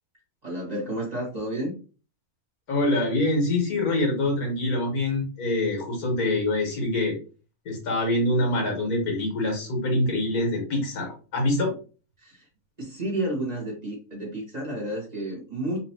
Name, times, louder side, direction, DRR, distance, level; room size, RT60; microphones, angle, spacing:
voice 1, 0.4-1.8 12.2-12.5 12.8-15.8, right 1 dB, 30° right, -4 dB, 1.4 m, -31 dB
voice 2, 2.7-7.2 7.7-11.7, left 1 dB, 80° left, 0 dB, 2.0 m, -25 dB
4.4 x 2.9 x 2.8 m, 0.36 s
omnidirectional pair, 1.6 m